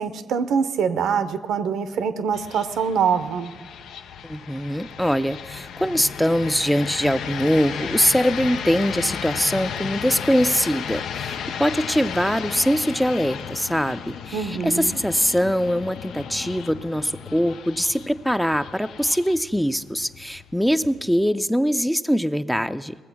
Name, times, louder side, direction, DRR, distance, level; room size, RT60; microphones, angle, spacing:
voice 1, 0.0-3.5 14.3-15.0, right 6 dB, 75° right, 11 dB, 0.7 m, -24 dB
sound 1, 2.3-21.3, left 8 dB, 75° left, 0.4 m, -34 dB
voice 2, 4.2-22.9, equal, ahead, 11 dB, 0.5 m, -22 dB
19.5 x 7.6 x 6.0 m, 1.5 s
supercardioid pair, 50°, 0 cm